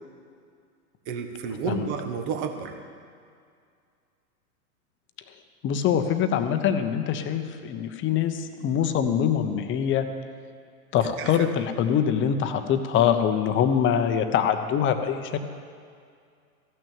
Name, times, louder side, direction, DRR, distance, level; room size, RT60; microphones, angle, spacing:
voice 1, 1.1-2.7 11.2-11.5 12.5-12.6, right 6 dB, 45° right, 5 dB, 1.6 m, -31 dB
voice 2, 5.6-10.1 10.9-15.4, left 8 dB, 25° left, 8 dB, 0.8 m, -24 dB
15.0 x 6.2 x 9.0 m, 2.2 s
hypercardioid pair, 110°, 46 cm